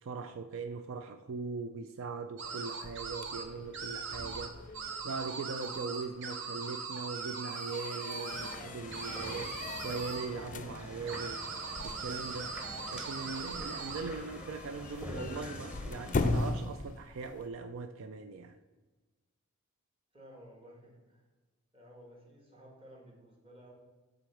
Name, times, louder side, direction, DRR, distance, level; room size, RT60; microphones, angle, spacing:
voice 1, 0.0-4.8 5.0-11.4 11.8-12.6 12.9-18.6, right 4 dB, 75° right, 9 dB, 0.4 m, -40 dB
sound 1, 2.4-17.5, left 3 dB, 40° left, 0.4 m, -41 dB
sound 2, 2.4-3.4 3.7-4.5 4.7-8.5 8.9-10.3 11.1-14.0, right 5 dB, 60° right, 0.9 m, -40 dB
sound 3, 8.3-16.5, left 1 dB, 5° right, 1.0 m, -46 dB
voice 2, 20.1-21.2 21.7-23.7, equal, 25° right, 0 dB, 1.8 m, -54 dB
7.9 x 4.0 x 6.0 m, 1.3 s
head